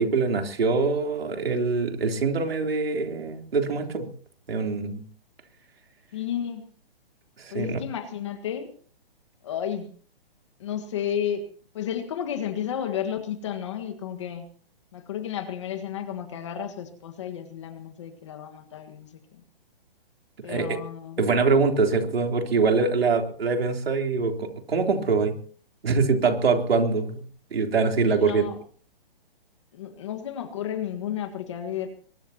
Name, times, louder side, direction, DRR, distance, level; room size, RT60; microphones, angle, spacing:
voice 1, 0.0-4.1 4.5-5.0 7.4-7.8 20.5-20.8 21.2-25.3 25.8-27.2 27.5-28.4, right 4 dB, 85° right, 4 dB, 3.7 m, -24 dB
voice 2, 6.1-6.7 7.5-8.7 9.4-9.9 10.6-11.4 11.7-14.5 14.9-19.4 20.4-21.2 28.0-28.6 29.7-31.9, left 9 dB, 30° left, 6 dB, 1.7 m, -32 dB
22.5 x 20.0 x 3.0 m, 0.43 s
hypercardioid pair, 175°, 29 cm